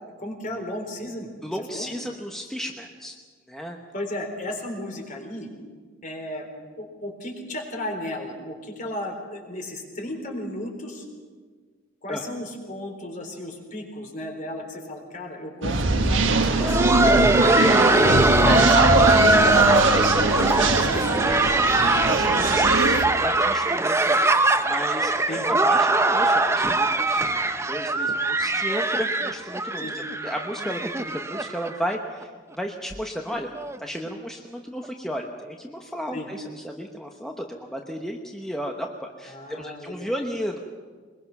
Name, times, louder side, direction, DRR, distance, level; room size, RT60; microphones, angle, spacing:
voice 1, 0.2-1.3 1.7-1.9 3.9-5.5 6.0-6.5 6.8-11.0 12.0-18.2 18.9-21.2 25.3-25.5 29.8-29.9 36.1-36.3 39.3-40.1, left 1 dB, 40° left, 2 dB, 3.9 m, -35 dB
voice 2, 1.4-3.2 3.5-3.8 12.1-12.2 21.2-27.3 27.7-33.5 33.8-40.6, equal, ahead, 1 dB, 1.0 m, -34 dB
sound 1, 15.6-23.0, right 2 dB, 70° right, 1.5 m, -22 dB
Laughter, 16.3-31.9 32.2-32.3 32.9-33.0 33.6-33.8 34.8-34.9, right 2 dB, 15° right, 0.7 m, -21 dB
22.5 x 21.5 x 6.0 m, 1.5 s
head